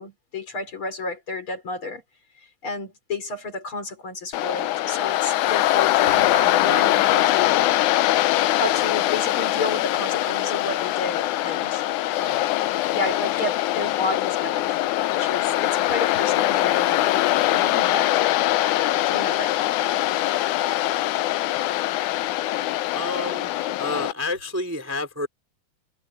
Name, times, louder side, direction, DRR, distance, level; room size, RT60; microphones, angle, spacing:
voice 1, 0.0-2.0 2.4-7.6 8.6-11.8 12.2-12.5 12.9-14.8 15.1-19.5, left 2 dB, 45° left, 4.8 m, -32 dB
Waves surf, 4.3-24.1, left 15 dB, 85° left, 2.2 m, -22 dB
voice 2, 22.9-23.5 23.8-25.3, left 2 dB, 5° right, 2.6 m, -29 dB
omnidirectional pair, 3.4 m